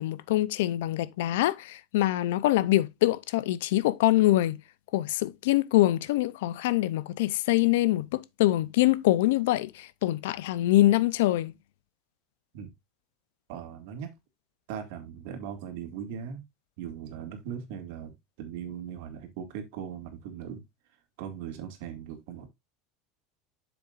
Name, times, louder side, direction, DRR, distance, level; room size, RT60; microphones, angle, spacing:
voice 1, 0.0-4.6 4.9-11.5, left 15 dB, 85° left, 0.6 m, -24 dB
voice 2, 13.5-14.1 14.7-16.4 16.8-20.6 21.2-22.5, right 8 dB, 65° right, 2.1 m, -39 dB
7.8 x 7.0 x 2.5 m
supercardioid pair, 160°, 0 cm